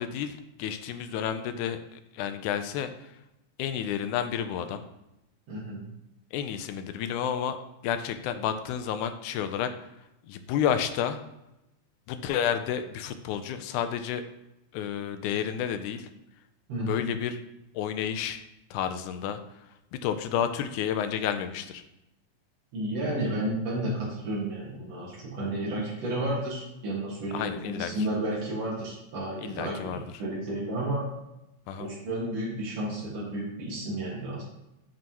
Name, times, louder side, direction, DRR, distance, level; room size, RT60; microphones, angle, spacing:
voice 1, 0.0-3.1 3.6-4.8 6.3-7.6 7.8-9.7 10.3-11.2 12.1-14.2 14.7-16.1 16.9-17.4 17.7-18.4 18.7-19.4 19.9-21.8 27.3-27.9 29.4-30.0 31.7-31.9, left 9 dB, 85° left, 9 dB, 2.0 m, -30 dB
voice 2, 5.5-5.8 16.7-17.1 22.7-31.1 31.8-34.4, right 1 dB, 60° right, -5 dB, 2.7 m, -32 dB
7.5 x 4.5 x 2.9 m, 0.90 s
omnidirectional pair, 3.4 m